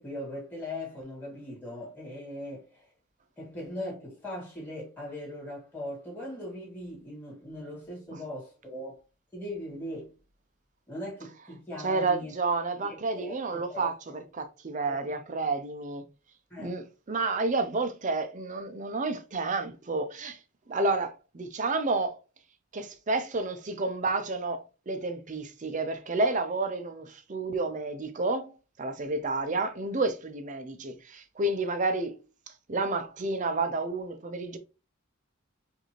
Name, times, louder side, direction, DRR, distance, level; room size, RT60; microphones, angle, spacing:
voice 1, 0.0-2.9 3.4-9.0 9.3-10.1 10.9-12.3 12.8-14.2 14.9-15.1 16.5-16.8, left 1 dB, 10° left, 2.4 m, -40 dB
voice 2, 11.8-16.0 16.6-20.4 20.7-22.2 22.7-32.2 32.7-34.6, right 3 dB, 35° right, 0.5 m, -30 dB
4.9 x 2.7 x 3.0 m
head